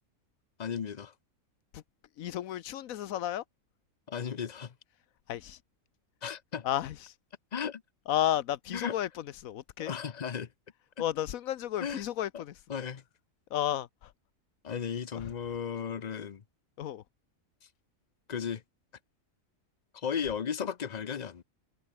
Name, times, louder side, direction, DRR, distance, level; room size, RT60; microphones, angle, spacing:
voice 1, 0.6-1.1 4.1-4.7 6.2-6.7 7.5-7.8 8.7-9.0 9.8-10.5 11.8-12.0 12.7-13.0 14.6-16.4 18.3-18.6 19.9-21.4, left 7 dB, 40° left, 0.7 m, -35 dB
voice 2, 2.2-3.4 5.3-5.6 6.6-7.1 8.1-9.9 11.0-12.5 13.5-14.1 15.1-15.3 16.8-17.0, left 11 dB, 90° left, 1.2 m, -32 dB
omnidirectional pair, 1.4 m